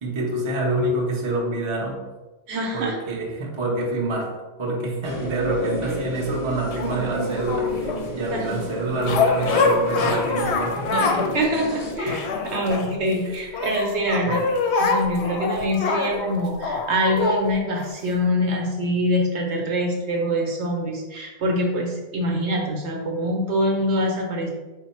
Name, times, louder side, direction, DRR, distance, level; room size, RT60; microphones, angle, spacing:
voice 1, 0.0-2.0 2.7-4.3 4.6-11.4 13.2-13.6 14.3-14.4, right 1 dB, 30° right, -2 dB, 0.6 m, -27 dB
voice 2, 2.5-2.9 8.3-8.6 11.3-14.4 14.8-24.5, equal, 65° right, 0 dB, 0.9 m, -24 dB
sound 1, 5.0-11.9, equal, 30° left, 0.4 m, -31 dB
sound 2, 6.7-8.1 9.0-11.4 11.7-13.1 13.5-17.4 18.1-18.2, left 4 dB, 70° left, 0.8 m, -25 dB
4.3 x 2.1 x 4.1 m, 1.2 s
omnidirectional pair, 1.3 m